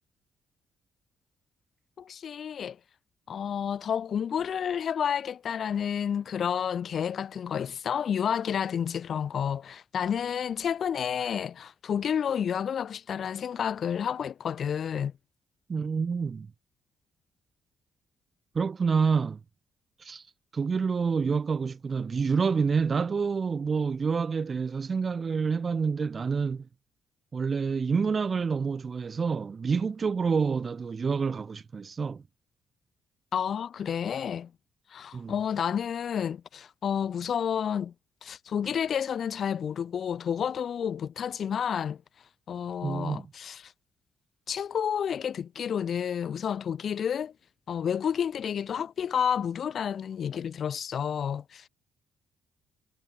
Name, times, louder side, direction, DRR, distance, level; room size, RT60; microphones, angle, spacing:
voice 1, 2.0-2.8 3.3-15.1 33.3-34.5 34.9-37.9 38.2-42.0 42.5-43.7 44.5-47.3 47.7-51.7, left 8 dB, 55° left, 5.5 m, -30 dB
voice 2, 15.7-16.5 18.5-19.4 20.0-20.3 20.5-26.7 27.3-32.2 35.1-35.4 42.8-43.3, right 5 dB, 40° right, 5.5 m, -28 dB
cardioid pair, 90°, 0 cm